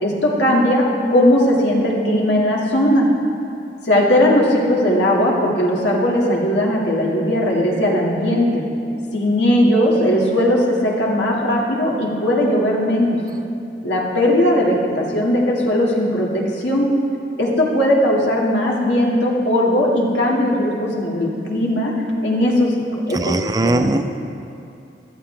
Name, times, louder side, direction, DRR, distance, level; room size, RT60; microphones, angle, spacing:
voice 1, 0.0-3.1 3.9-8.6 9.1-13.2 13.8-16.9 17.4-21.9 22.2-23.9, left 1 dB, 80° left, -3 dB, 2.2 m, -18 dB
voice 2, 23.1-24.0, right 2 dB, 20° right, 8 dB, 0.4 m, -19 dB
14.0 x 13.5 x 3.4 m, 2.6 s
head